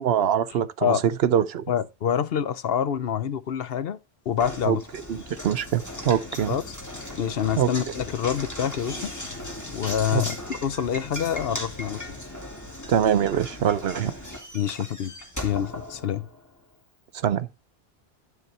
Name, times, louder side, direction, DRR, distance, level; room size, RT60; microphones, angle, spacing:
voice 1, 0.0-1.7 4.7-4.8 5.1-6.5 7.6-7.7 10.1-10.2 12.9-14.1 17.1-17.5, right 9 dB, 75° right, 0.9 m, -23 dB
voice 2, 1.7-4.0 4.3-4.8 6.5-6.7 7.2-9.1 9.7-12.0 14.5-15.1 15.4-16.3, left 9 dB, 65° left, 0.9 m, -26 dB
Knock, 4.4-16.5, left 1 dB, 15° left, 2.4 m, -37 dB
12.0 x 4.1 x 5.5 m
omnidirectional pair, 1.1 m